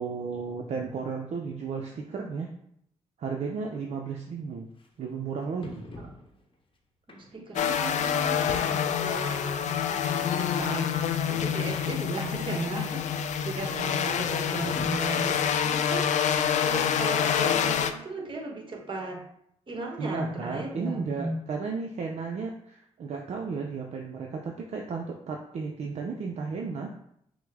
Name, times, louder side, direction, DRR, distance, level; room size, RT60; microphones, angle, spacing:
voice 1, 0.0-2.5 3.2-4.7 5.0-5.8 20.0-26.9, right 5 dB, 60° right, 1 dB, 0.5 m, -34 dB
sound 1, 3.7-3.8 4.8-4.9 5.6-6.6 7.1-7.6 8.0-8.1 9.1-9.2 9.4-9.5 10.3-10.4 10.7-10.8 11.1-11.2 11.3-11.8 12.4-12.5 14.5-15.9 16.3-16.4 16.9-17.0, left 1 dB, 45° left, 0.8 m, -45 dB
voice 2, 7.1-13.1 13.4-16.1 16.6-19.2 19.7-21.4, right 2 dB, 40° right, 0 dB, 1.1 m, -36 dB
sound 2, 7.6-17.9, left 8 dB, 70° left, 0.4 m, -27 dB
6.0 x 2.0 x 3.5 m, 0.73 s
cardioid pair, 75°, 13 cm